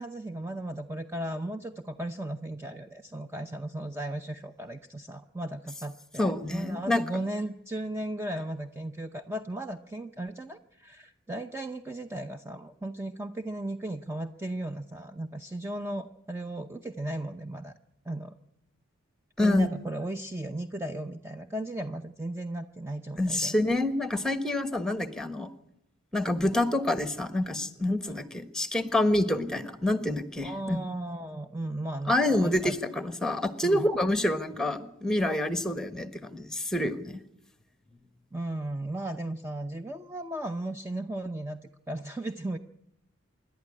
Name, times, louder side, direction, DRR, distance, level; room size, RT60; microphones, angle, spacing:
voice 1, 0.0-17.7 18.1-18.4 19.4-23.6 28.0-28.2 30.4-32.8 33.6-33.9 38.3-42.6, right 1 dB, 15° right, 7 dB, 0.7 m, -36 dB
voice 2, 6.2-7.0 19.4-19.7 23.2-25.5 26.1-30.8 32.1-37.2, left 1 dB, 5° left, 10 dB, 1.3 m, -27 dB
26.5 x 11.5 x 9.7 m, 0.83 s
head